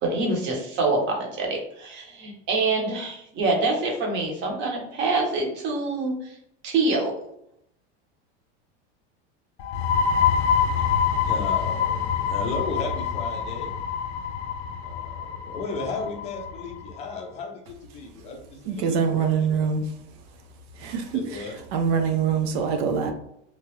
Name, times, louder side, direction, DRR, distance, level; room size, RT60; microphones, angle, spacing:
voice 1, 0.0-6.3 6.6-7.1, right 3 dB, 35° right, 0.8 m, -25 dB
sound 1, 9.6-17.1, left 7 dB, 85° left, 0.5 m, -26 dB
voice 2, 11.2-13.7 14.8-19.7 21.1-21.6, left 3 dB, 20° left, 0.4 m, -35 dB
voice 3, 18.7-19.9 20.7-21.4 21.7-23.1, right 6 dB, 70° right, 0.6 m, -24 dB
2.9 x 2.3 x 3.0 m
supercardioid pair, 165°, 33 cm